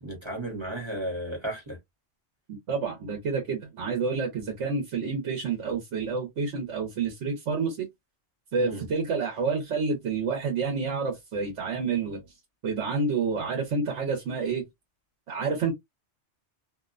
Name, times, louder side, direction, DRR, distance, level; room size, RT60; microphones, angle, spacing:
voice 1, 0.0-1.8 8.6-8.8, right 1 dB, 25° right, 1.0 m, -34 dB
voice 2, 2.7-7.9 8.5-12.2 12.6-14.7 15.3-15.7, right 4 dB, 85° right, 1.1 m, -29 dB
2.7 x 2.1 x 2.4 m
omnidirectional pair, 1.2 m